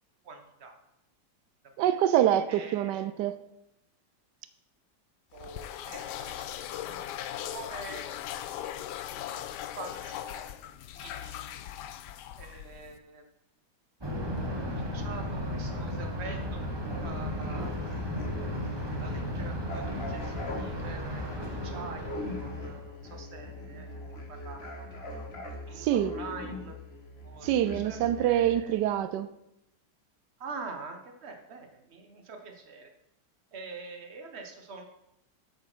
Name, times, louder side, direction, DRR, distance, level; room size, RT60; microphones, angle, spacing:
voice 1, 0.2-0.7 1.8-2.0 2.5-3.1 5.3-8.0 8.3-8.9 9.8-10.6 10.9-11.6 12.4-13.2 14.6-16.6 17.0-17.7 18.4-18.7 19.0-22.1 22.4-23.9 24.3-25.2 25.7-26.8 27.2-28.7 30.4-32.9 33.5-34.8, right 4 dB, 40° right, 1.5 m, -45 dB
voice 2, 1.8-3.3 25.8-26.1 27.4-29.3, right 11 dB, 90° right, 1.2 m, -25 dB
sound 1, 5.3-13.0, left 11 dB, 80° left, 1.2 m, -39 dB
Thunder, 14.0-22.8, equal, 15° right, 1.2 m, -35 dB
sound 2, 16.9-28.6, left 2 dB, 40° left, 1.7 m, -41 dB
8.3 x 8.0 x 6.1 m
omnidirectional pair, 1.8 m